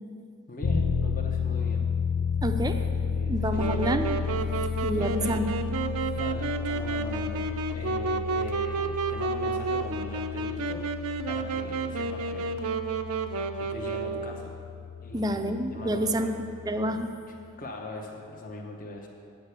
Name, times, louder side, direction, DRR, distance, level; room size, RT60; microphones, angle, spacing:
voice 1, 0.5-1.9 3.0-3.8 5.0-5.4 6.1-10.9 11.3-12.6 13.6-14.5 15.0-15.4 15.7-16.3 17.3-19.1, left 1 dB, 40° left, 0 dB, 0.9 m, -41 dB
sound 1, 0.6-17.0, left 6 dB, 75° left, 0.7 m, -32 dB
voice 2, 2.4-2.8 3.3-4.2 4.8-5.5 15.1-16.3 16.7-17.1, right 1 dB, 20° right, 7 dB, 0.5 m, -28 dB
Wind instrument woodwind instrument, 3.6-14.5, right 4 dB, 80° right, 0.6 m, -31 dB
8.2 x 6.5 x 8.1 m, 2.4 s
head